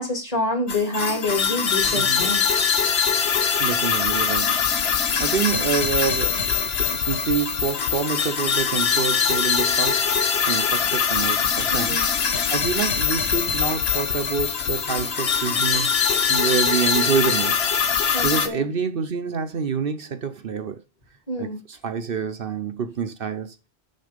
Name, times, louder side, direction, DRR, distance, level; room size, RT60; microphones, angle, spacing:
voice 1, 0.0-2.4 11.7-12.1 18.1-18.6 21.3-21.6, left 2 dB, 35° left, 2.4 m, -27 dB
sound 1, 0.7-18.5, left 6 dB, 75° left, 1.2 m, -22 dB
voice 2, 1.9-2.3 3.6-4.6 5.2-12.0 12.5-17.6 18.2-20.8 21.4-23.5, right 7 dB, 60° right, 1.0 m, -27 dB
6.6 x 6.1 x 5.0 m
omnidirectional pair, 1.1 m